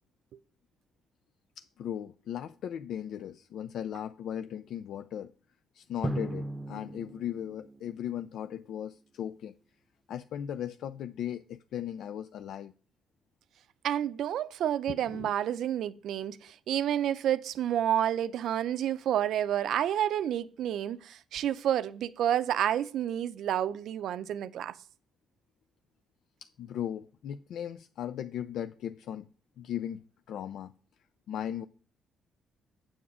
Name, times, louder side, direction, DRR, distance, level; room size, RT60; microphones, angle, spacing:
voice 1, 1.6-5.3 5.7-9.5 10.1-12.7 14.9-15.5 26.4-29.3 29.6-30.7 31.3-31.7, left 10 dB, 75° left, 0.3 m, -37 dB
Drum, 6.0-8.7, right 1 dB, 15° right, 0.8 m, -38 dB
voice 2, 13.8-24.8, right 10 dB, 75° right, 0.5 m, -29 dB
7.3 x 7.1 x 4.8 m
cardioid pair, 90°, 0 cm